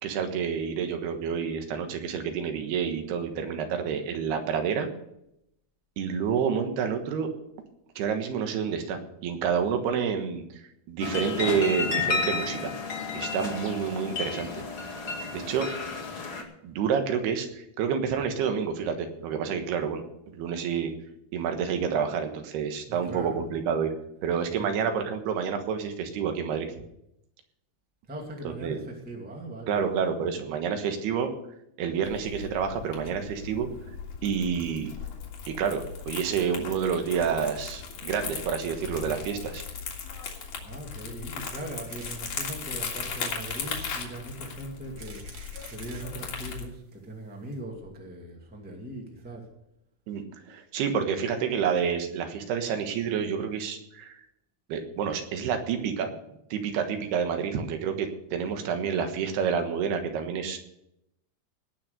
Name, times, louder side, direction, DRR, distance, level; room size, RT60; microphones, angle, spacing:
voice 1, 0.0-4.9 6.0-7.3 8.0-10.4 10.9-12.7 13.1-14.6 15.3-15.7 16.6-20.0 20.3-20.9 21.3-23.9 24.2-26.7 28.4-28.8 29.7-31.3 31.8-33.7 34.2-34.9 35.5-39.6 50.1-54.2 54.7-56.2 56.5-60.6, right 7 dB, 85° right, 6 dB, 3.4 m, -29 dB
sound 1, 11.0-16.4, left 4 dB, 40° left, 2.0 m, -32 dB
voice 2, 22.9-23.4 24.6-24.8 28.1-29.8 40.6-45.2 45.7-49.4, right 2 dB, 5° right, 0 dB, 1.5 m, -40 dB
Crumpling crinkling, 32.0-46.7, left 6 dB, 60° left, 3.3 m, -38 dB
sound 2, 41.9-42.2 42.7-42.8 43.4-44.0 44.7-46.1 46.9-47.0 47.2-47.3 47.5-47.6, right 4 dB, 60° right, 1.0 m, -47 dB
18.5 x 6.2 x 6.7 m, 0.79 s
omnidirectional pair, 4.5 m